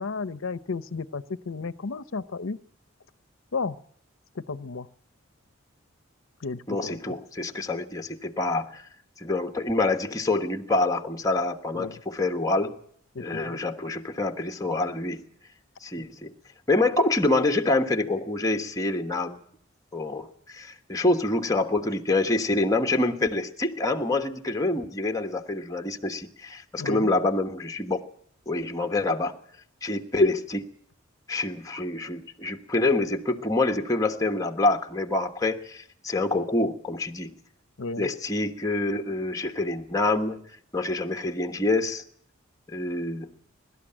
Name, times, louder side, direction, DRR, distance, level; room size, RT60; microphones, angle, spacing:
voice 1, 0.0-2.6 3.5-3.8 4.4-4.9 6.4-7.1 11.8-12.0 13.1-13.6 26.8-27.1 37.8-38.1, left 4 dB, 75° left, 14 dB, 0.7 m, -33 dB
voice 2, 6.7-8.8 9.2-12.7 13.2-15.2 15.8-16.3 16.7-19.4 19.9-28.0 28.5-29.3 29.8-30.7 31.3-37.3 38.0-40.4 40.7-42.0 42.7-43.3, left 2 dB, 15° left, 6 dB, 1.3 m, -26 dB
23.0 x 12.5 x 8.9 m, 0.64 s
head